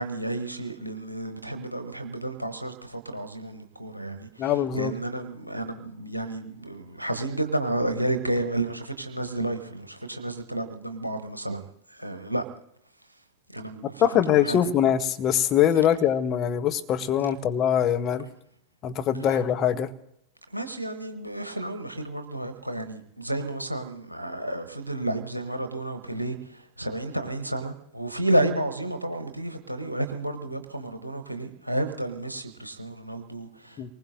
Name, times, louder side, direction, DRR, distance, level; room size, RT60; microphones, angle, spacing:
voice 1, 0.0-12.4 13.5-13.9 14.4-14.6 20.5-33.9, right 1 dB, 85° right, 0.9 m, -31 dB
voice 2, 4.4-4.9 14.0-18.3 18.8-19.9 33.8-33.9, left 9 dB, 30° left, 0.9 m, -23 dB
28.0 x 19.5 x 2.6 m
figure-of-eight pair, 90°, 0 cm